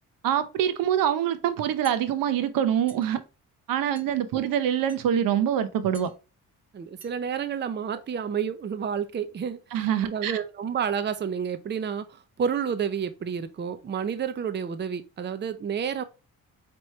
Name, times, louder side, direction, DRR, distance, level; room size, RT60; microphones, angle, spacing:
voice 1, 0.2-3.2 3.7-6.1 9.7-10.4, right 9 dB, 80° right, 0.7 m, -25 dB
sound 1, 1.8-2.0 2.9-3.1 4.0-4.1 4.9-5.1 5.9-6.1 7.0-7.1 7.5-7.6 7.9-8.1, right 1 dB, 5° right, 2.5 m, -49 dB
voice 2, 6.7-16.0, right 7 dB, 35° right, 0.6 m, -30 dB
4.6 x 3.0 x 3.1 m
cardioid pair, 70°, 33 cm